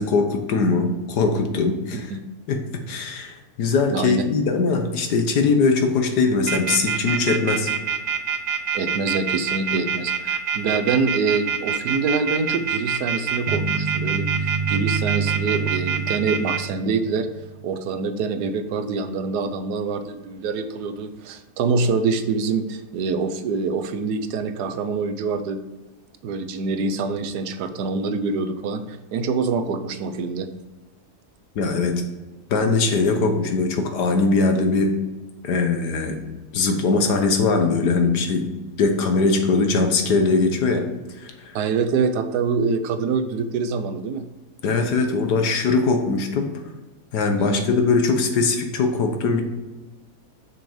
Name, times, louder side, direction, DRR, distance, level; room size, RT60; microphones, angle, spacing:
voice 1, 0.0-2.1 2.5-7.7 31.5-31.9 32.5-34.9 35.4-36.2 36.5-38.5 38.8-40.8 41.2-41.3 44.6-46.5 47.1-49.4, left 4 dB, 80° left, 5 dB, 1.6 m, -21 dB
voice 2, 3.9-4.2 8.7-17.3 17.6-25.6 26.2-30.5 41.5-44.2 47.4-47.7, right 4 dB, 80° right, 9 dB, 1.3 m, -25 dB
sound 1, 6.5-16.6, right 7 dB, 55° right, 0.7 m, -25 dB
sound 2, 13.5-17.7, right 5 dB, 30° right, 1.1 m, -28 dB
6.7 x 6.3 x 5.0 m, 1.2 s
omnidirectional pair, 1.7 m